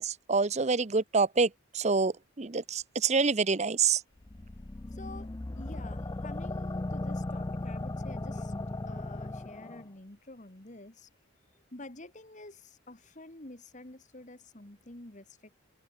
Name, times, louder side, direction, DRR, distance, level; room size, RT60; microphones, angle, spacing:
voice 1, 0.0-4.0, right 4 dB, 30° right, 0.7 m, -27 dB
sound 1, 4.2-9.8, left 2 dB, 20° left, 0.4 m, -37 dB
voice 2, 4.9-5.3 5.6-8.5 8.9-11.1 11.7-15.6, left 2 dB, 35° left, 1.9 m, -48 dB
open air
head